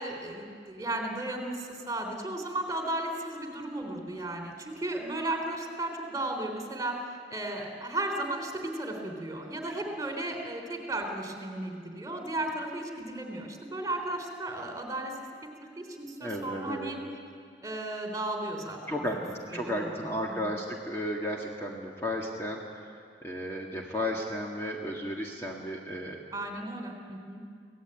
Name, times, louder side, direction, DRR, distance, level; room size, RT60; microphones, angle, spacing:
voice 1, 0.0-7.0 7.3-15.1 15.6-17.0 17.6-20.6 26.3-27.4, right 1 dB, 20° right, 3 dB, 3.6 m, -35 dB
voice 2, 16.2-16.9 18.9-22.9 23.2-26.2, equal, 15° left, -2 dB, 1.9 m, -34 dB
25.0 x 17.5 x 9.1 m, 2.2 s
head